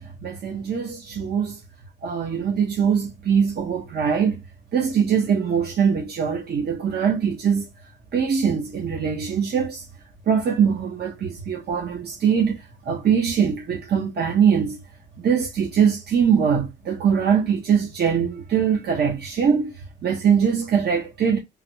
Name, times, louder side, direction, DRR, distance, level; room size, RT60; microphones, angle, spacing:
voice 1, 0.0-1.6 2.0-4.4 4.7-7.7 8.1-9.8 10.3-14.8 15.2-21.4, right 7 dB, 55° right, 1.2 m, -22 dB
3.7 x 2.3 x 3.1 m
cardioid pair, 90°, 20 cm